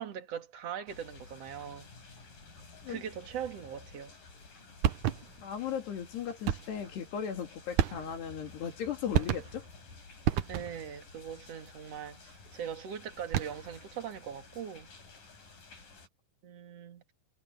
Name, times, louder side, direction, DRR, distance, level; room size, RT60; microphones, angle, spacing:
voice 1, 0.0-1.9 2.9-4.1 10.5-14.9 16.4-17.1, right 8 dB, 45° right, 2.7 m, -41 dB
sound 1, 0.9-16.1, left 4 dB, 50° left, 8.0 m, -53 dB
sound 2, 4.8-5.5 6.5-6.9 7.8-8.4 9.1-9.7 10.2-10.9 13.1-13.8, right 11 dB, 75° right, 1.8 m, -31 dB
voice 2, 5.4-9.6, left 8 dB, 75° left, 5.0 m, -37 dB
omnidirectional pair, 4.9 m